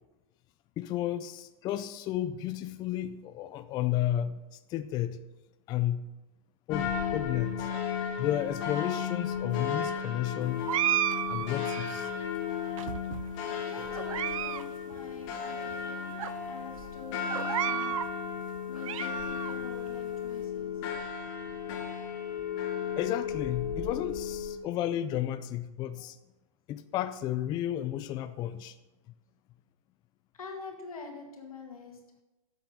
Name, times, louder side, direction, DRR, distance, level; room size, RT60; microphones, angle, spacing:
voice 1, 0.8-4.4 4.7-5.2 5.7-6.1 6.7-7.7 8.2-10.7 11.3-12.1 23.0-26.2 26.7-28.8, left 12 dB, 25° left, 0.4 m, -32 dB
sound 1, 6.7-24.6, left 7 dB, 45° left, 1.9 m, -34 dB
sound 2, 10.7-12.1 12.8-13.4 13.9-14.6 14.9-15.0 15.7-15.8 16.2-16.3 17.3-18.1 18.6-19.5, right 12 dB, 70° right, 0.4 m, -32 dB
voice 2, 13.7-16.2 16.5-17.9 18.4-20.7 22.0-22.2 30.3-32.0, left 4 dB, 90° left, 2.1 m, -46 dB
10.5 x 7.5 x 3.9 m
hypercardioid pair, 125°, 18 cm